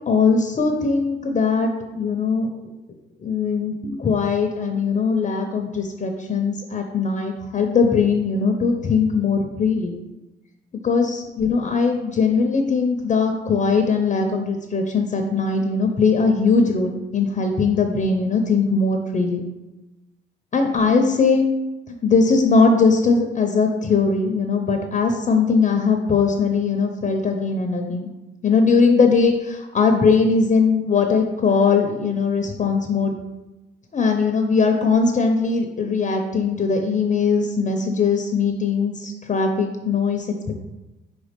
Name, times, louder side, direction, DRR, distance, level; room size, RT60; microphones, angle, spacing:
voice 1, 0.1-2.5 3.2-9.9 10.8-19.4 20.5-21.5 22.0-28.1 28.4-33.1 33.9-40.6, left 4 dB, 35° left, 4 dB, 0.7 m, -20 dB
4.7 x 4.1 x 5.1 m, 1.0 s
cardioid pair, 90°, 20 cm